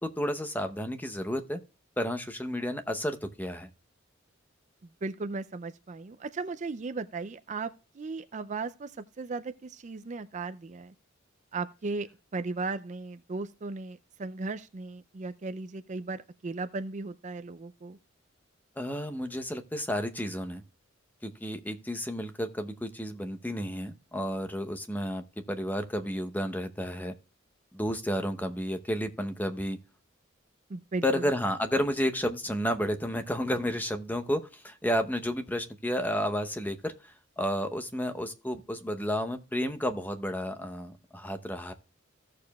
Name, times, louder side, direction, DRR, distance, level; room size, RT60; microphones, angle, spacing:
voice 1, 0.0-1.6 2.0-3.7 18.8-20.6 21.2-27.1 27.7-29.8 31.0-41.7, equal, 10° left, 0.8 m, -31 dB
voice 2, 5.0-10.9 11.5-18.0 30.7-31.2, right 3 dB, 35° right, 0.4 m, -36 dB
15.5 x 6.7 x 2.3 m
head